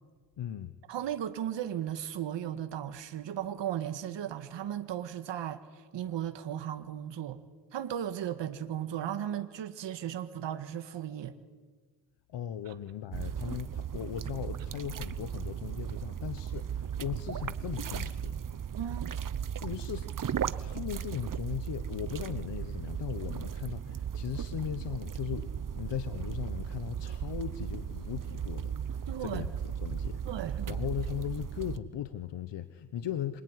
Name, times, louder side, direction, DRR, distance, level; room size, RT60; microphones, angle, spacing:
voice 1, 0.4-0.7 12.3-18.3 19.6-20.3 20.6-28.7 29.2-29.5 29.8-33.4, left 10 dB, 75° left, 12 dB, 1.3 m, -38 dB
voice 2, 0.9-7.4 7.7-11.4 12.7-12.8 18.7-19.1 29.1-29.4 30.3-30.8, right 10 dB, 80° right, 9 dB, 1.8 m, -36 dB
sound 1, 13.1-31.8, right 8 dB, 50° right, 1.1 m, -36 dB
27.0 x 22.5 x 9.8 m, 1.4 s
cardioid pair, 75°, 43 cm